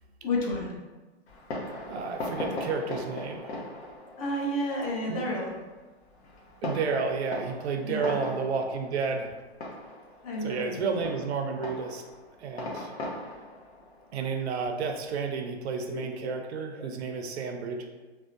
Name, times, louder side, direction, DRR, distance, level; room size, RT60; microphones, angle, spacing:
voice 1, 0.2-0.8 4.2-5.5 7.8-8.2 10.2-11.1 15.9-16.4 16.8-16.9 17.2-17.3, left 1 dB, 35° left, -2 dB, 0.5 m, -32 dB
Fireworks, 1.3-15.4, left 1 dB, 80° left, 0.8 m, -40 dB
voice 2, 1.9-3.6 5.1-5.3 6.6-9.3 10.4-12.1 12.4-12.9 14.1-17.9, right 5 dB, 80° right, 4 dB, 0.5 m, -31 dB
2.6 x 2.1 x 2.4 m, 1.2 s
hypercardioid pair, 145°, 32 cm